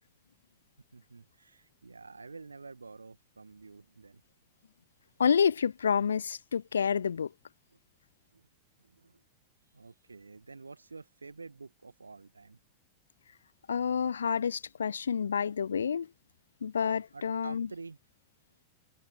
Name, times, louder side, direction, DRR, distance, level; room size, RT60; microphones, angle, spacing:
voice 1, 0.9-4.2 7.7-7.8 8.3-8.5 8.8-9.2 9.7-12.6 17.1-18.0, right 4 dB, 80° right, 2.2 m, -49 dB
voice 2, 5.2-7.3 13.7-16.1 16.6-17.7, left 7 dB, 70° left, 0.4 m, -28 dB
figure-of-eight pair, 90°, 0 cm